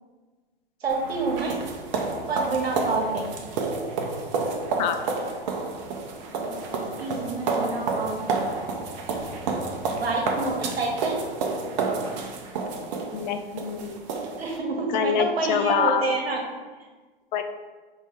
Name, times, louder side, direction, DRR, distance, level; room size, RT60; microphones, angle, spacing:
voice 1, 0.8-1.5 2.3-3.3 6.3-8.4 9.9-11.2 14.4-16.4, right 3 dB, 90° right, 0 dB, 1.1 m, -28 dB
sound 1, 0.9-14.6, right 4 dB, 50° right, 0.7 m, -30 dB
voice 2, 13.1-14.0 14.9-16.1 17.3-17.4, left 8 dB, 50° left, 8 dB, 0.5 m, -25 dB
5.3 x 2.8 x 3.6 m, 1.3 s
hypercardioid pair, 110°, 30 cm